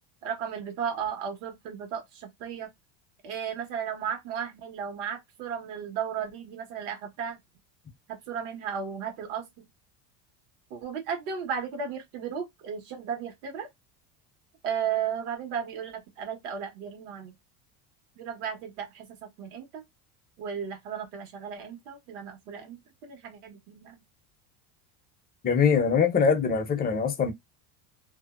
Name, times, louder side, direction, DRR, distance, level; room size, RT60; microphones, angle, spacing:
voice 1, 0.2-2.7 3.2-7.4 8.3-9.6 10.7-13.7 14.6-17.3 18.2-19.8 20.4-24.0, right 7 dB, 80° right, 1.2 m, -35 dB
voice 2, 25.4-27.3, left 6 dB, 20° left, 0.5 m, -23 dB
2.6 x 2.0 x 2.4 m
supercardioid pair, 120°, 44 cm